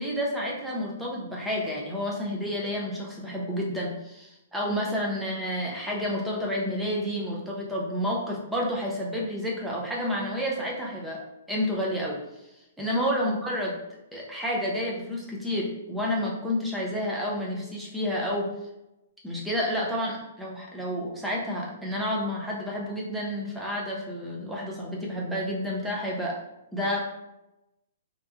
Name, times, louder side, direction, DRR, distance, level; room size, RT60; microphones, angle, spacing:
voice 1, 0.0-11.2 11.5-12.2 12.8-13.8 14.1-18.5 19.2-26.4 26.7-27.1, equal, ahead, -4 dB, 0.5 m, -30 dB
3.0 x 2.3 x 3.2 m, 0.92 s
hypercardioid pair, 175°, 0 cm